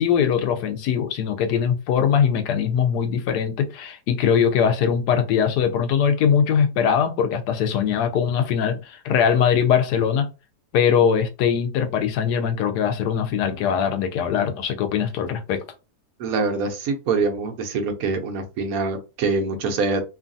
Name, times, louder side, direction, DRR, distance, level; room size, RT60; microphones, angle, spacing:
voice 1, 0.0-10.3 10.7-15.6, left 7 dB, 90° left, 1.2 m, -21 dB
voice 2, 16.2-20.0, right 4 dB, 70° right, 1.0 m, -24 dB
3.0 x 2.3 x 2.5 m
omnidirectional pair, 1.7 m